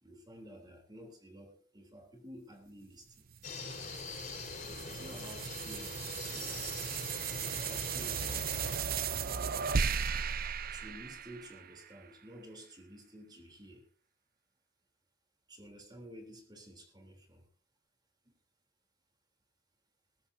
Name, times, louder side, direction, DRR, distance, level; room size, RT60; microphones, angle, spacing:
voice 1, 0.0-3.3 4.8-6.8 7.4-8.7 10.7-13.9 15.5-17.5 18.3-18.4, equal, 25° right, 4 dB, 3.4 m, -52 dB
sound 1, 3.3-11.9, right 6 dB, 50° right, 0.6 m, -36 dB
sound 2, 3.4-8.8, left 4 dB, 40° left, 4.9 m, -43 dB
20.0 x 14.5 x 2.7 m, 0.40 s
head